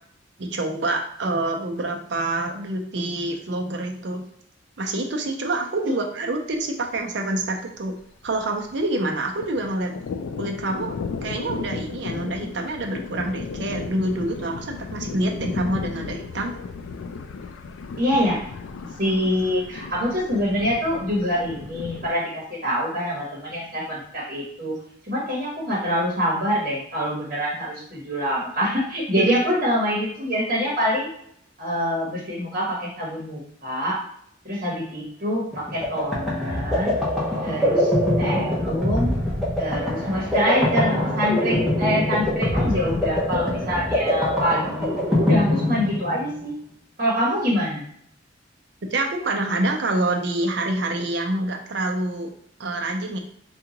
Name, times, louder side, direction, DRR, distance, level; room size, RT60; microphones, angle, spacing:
voice 1, 0.4-4.2 4.8-7.9 8.2-9.9 10.4-11.0 11.2-16.5 29.2-29.4 48.9-52.3 52.6-53.2, right 2 dB, 60° right, 3 dB, 0.5 m, -26 dB
Thunder, 6.5-6.7 7.0-7.1 7.4-8.9 9.1-22.1, left 4 dB, 85° left, 0.3 m, -35 dB
voice 2, 18.0-18.5 18.8-24.8 25.1-31.1 31.6-34.0 34.4-36.9 37.4-37.9 38.2-39.1 39.6-46.5 47.0-47.8, equal, 45° right, -4 dB, 1.0 m, -25 dB
sound 1, 35.5-46.4, left 1 dB, ahead, 0.8 m, -23 dB
3.7 x 2.4 x 2.9 m, 0.67 s
head